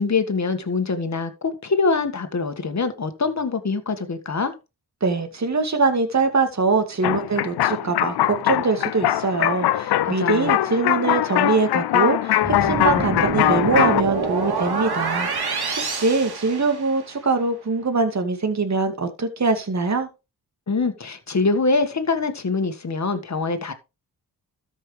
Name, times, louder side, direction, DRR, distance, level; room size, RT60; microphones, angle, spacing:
voice 1, 0.0-4.5 10.0-10.6 20.7-23.7, left 4 dB, 45° left, 1.8 m, -24 dB
voice 2, 5.0-20.1, right 4 dB, 45° right, 2.3 m, -23 dB
sound 1, 7.0-14.0, left 13 dB, 85° left, 0.6 m, -22 dB
sound 2, 12.4-17.2, right 4 dB, 70° right, 2.9 m, -27 dB
13.0 x 5.6 x 3.3 m
cardioid pair, 60°, 39 cm